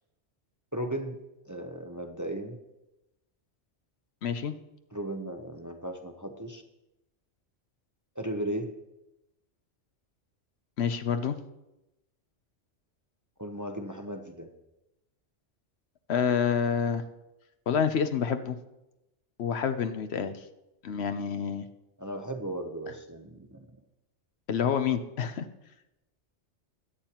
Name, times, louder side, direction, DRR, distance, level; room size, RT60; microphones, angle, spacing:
voice 1, 0.7-1.1 1.4-2.6 4.9-6.6 8.1-8.7 13.4-14.5 22.0-23.6, right 1 dB, 20° right, 4 dB, 0.7 m, -36 dB
voice 2, 4.2-4.5 10.8-11.4 16.1-17.0 17.7-18.6 19.4-20.4 20.8-21.7 24.5-25.5, left 7 dB, 65° left, 9 dB, 0.9 m, -28 dB
21.0 x 8.8 x 2.9 m, 0.94 s
omnidirectional pair, 1.2 m